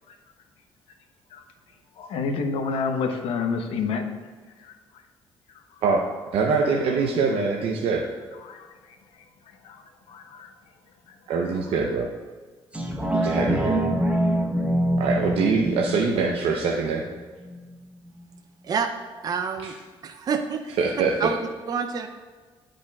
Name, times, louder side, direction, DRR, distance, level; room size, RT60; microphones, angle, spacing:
voice 1, 1.9-5.0 5.5-5.8 8.3-10.7 11.1-11.6, left 5 dB, 75° left, 6 dB, 0.8 m, -31 dB
voice 2, 6.3-8.0 11.3-12.1 13.2-13.8 15.0-17.1 19.6-19.7 20.8-21.3, right 4 dB, 75° right, 0 dB, 0.7 m, -23 dB
sound 1, 12.7-17.8 18.2-18.3, right 1 dB, 10° right, 1.0 m, -26 dB
voice 3, 19.2-19.7 20.0-20.8 21.2-21.4 21.7-22.1, right 6 dB, 40° right, 6 dB, 0.5 m, -27 dB
10.5 x 5.0 x 2.3 m, 1.4 s
cardioid pair, 95°, 10 cm